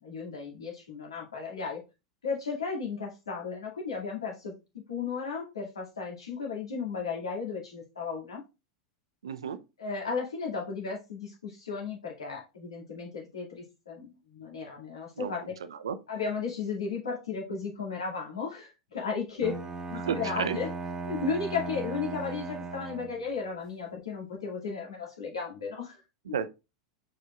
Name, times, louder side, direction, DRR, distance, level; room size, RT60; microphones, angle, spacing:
voice 1, 0.0-1.8 2.2-8.4 9.8-15.5 16.1-19.6 19.9-20.7 21.0-26.0, left 5 dB, 80° left, 2.0 m, -35 dB
voice 2, 9.2-9.6 15.2-15.3 15.7-16.0 20.0-20.6 26.3-26.5, right 7 dB, 80° right, 0.5 m, -32 dB
Bowed string instrument, 19.4-23.4, right 3 dB, 20° right, 0.7 m, -37 dB
4.8 x 4.4 x 2.4 m
hypercardioid pair, 90°, 3 cm